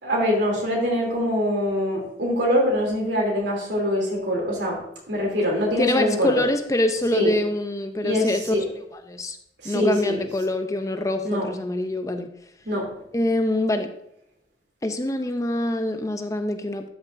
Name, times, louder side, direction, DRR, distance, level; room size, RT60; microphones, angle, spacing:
voice 1, 0.0-4.8 5.1-6.4 7.1-7.3 8.0-8.6 9.6-10.2 11.2-11.5 12.6-12.8, equal, 85° right, -1 dB, 3.0 m, -23 dB
voice 2, 5.8-8.4 9.1-9.4 9.6-12.3 13.1-13.9 14.8-16.9, left 1 dB, 20° left, 7 dB, 0.5 m, -25 dB
12.5 x 5.7 x 2.6 m, 0.73 s
head